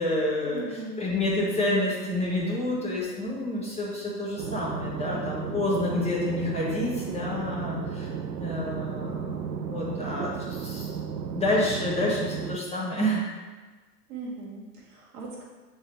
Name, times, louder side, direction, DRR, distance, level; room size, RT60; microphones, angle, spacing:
voice 1, 0.0-8.1 8.4-10.9 11.3-13.2, left 1 dB, 15° left, -6 dB, 1.5 m, -28 dB
voice 2, 0.5-1.0 14.1-15.4, right 3 dB, 55° right, -3 dB, 1.9 m, -39 dB
sound 1, 4.4-12.6, right 7 dB, 85° right, 0.6 m, -34 dB
8.1 x 3.8 x 3.2 m, 1.3 s
figure-of-eight pair, 90°, 49 cm